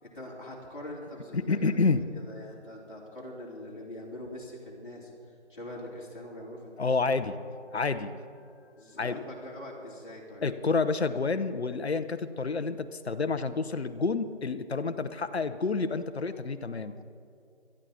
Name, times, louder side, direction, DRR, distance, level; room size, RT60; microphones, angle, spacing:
voice 1, 0.0-5.1 5.5-6.9 8.8-10.4, left 1 dB, 45° left, -3 dB, 3.1 m, -43 dB
voice 2, 1.3-2.0 6.8-8.1 9.0-9.1 10.4-17.0, left 4 dB, 60° left, 11 dB, 0.9 m, -29 dB
17.5 x 13.0 x 4.2 m, 2.4 s
figure-of-eight pair, 160°, 36 cm